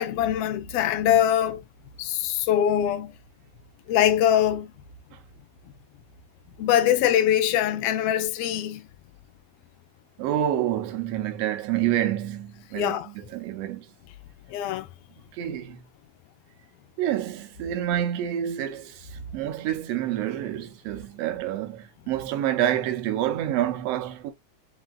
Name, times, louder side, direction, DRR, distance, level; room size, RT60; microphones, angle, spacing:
voice 1, 0.0-1.6 2.0-3.1 3.9-4.7 6.6-8.8 12.7-13.1 14.5-14.9, left 10 dB, 75° left, 1.5 m, -23 dB
voice 2, 10.2-13.9 15.3-15.8 17.0-24.3, right 11 dB, 70° right, 1.6 m, -28 dB
6.1 x 2.8 x 2.3 m
omnidirectional pair, 3.4 m